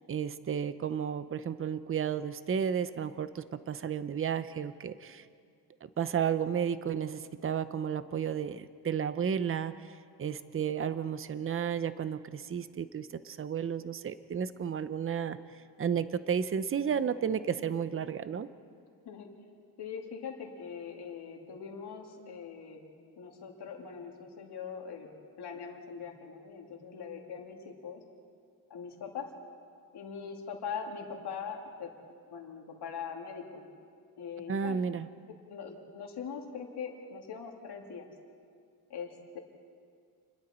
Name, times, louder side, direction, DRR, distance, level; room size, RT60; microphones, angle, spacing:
voice 1, 0.1-5.2 6.0-15.4 15.8-18.5 34.5-35.1, right 7 dB, 35° right, 13 dB, 0.7 m, -32 dB
voice 2, 19.8-25.1 25.4-28.0 28.7-29.3 29.9-31.9 32.3-33.7 34.2-34.8 35.5-38.1 38.9-39.4, left 6 dB, 90° left, 1 dB, 2.7 m, -42 dB
29.0 x 21.0 x 4.4 m, 2.2 s
wide cardioid pair, 150°, 39 cm